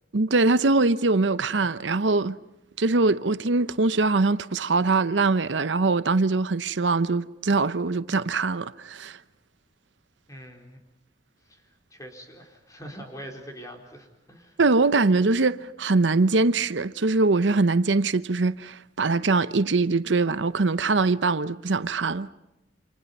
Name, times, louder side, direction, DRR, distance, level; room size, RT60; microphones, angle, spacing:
voice 1, 0.1-2.4 2.8-9.2 14.6-22.3, right 3 dB, 85° right, 0.8 m, -22 dB
voice 2, 10.3-10.8 11.5-11.6 11.9-14.6, equal, 20° left, 4.3 m, -43 dB
29.0 x 26.5 x 5.4 m
head